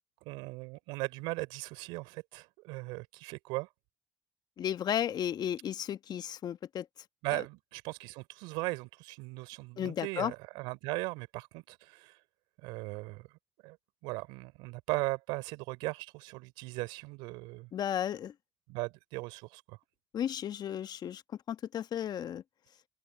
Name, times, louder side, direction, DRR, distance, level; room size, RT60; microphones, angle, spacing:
voice 1, 0.2-3.7 7.2-12.2 12.6-13.3 13.6-13.8 14.0-17.7 18.7-19.8, right 24 dB, 80° right, 3.4 m, -38 dB
voice 2, 4.6-6.9 7.3-7.4 9.8-10.3 17.7-18.3 20.1-21.2 21.5-22.4, left 9 dB, 60° left, 1.4 m, -34 dB
hypercardioid pair, 45°, 8 cm